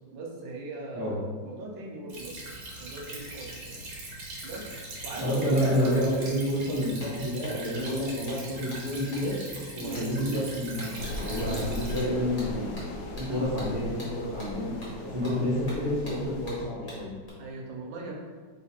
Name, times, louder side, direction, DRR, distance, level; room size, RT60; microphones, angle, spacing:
voice 1, 0.1-2.3 2.8-3.8 4.4-4.7 5.0-5.8 9.8-10.0 11.4-11.6 13.3-13.5 15.2-15.4 17.4-18.2, right 3 dB, 75° right, -1 dB, 1.4 m, -39 dB
Stream / Trickle dribble, 2.1-12.0, right 2 dB, 55° right, 1.2 m, -41 dB
voice 2, 5.2-9.4 9.7-12.7 13.2-14.7 15.0-17.1, equal, 20° right, -10 dB, 0.7 m, -29 dB
sound 1, 7.0-17.3, equal, 25° left, 1.1 m, -46 dB
sound 2, 11.0-16.6, left 1 dB, 70° left, 1.0 m, -38 dB
3.4 x 3.2 x 4.2 m, 1.5 s
omnidirectional pair, 2.1 m